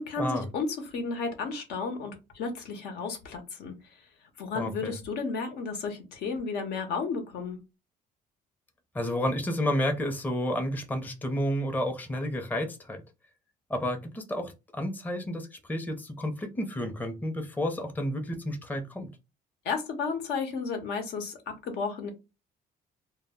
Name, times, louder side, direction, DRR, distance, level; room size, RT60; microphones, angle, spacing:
voice 1, 0.0-3.7 4.4-7.6 19.6-22.1, left 4 dB, 75° left, 0.9 m, -33 dB
voice 2, 4.5-4.9 8.9-13.0 13.7-19.1, left 1 dB, 10° left, 0.6 m, -31 dB
2.1 x 2.1 x 3.4 m
cardioid pair, 110°, 17 cm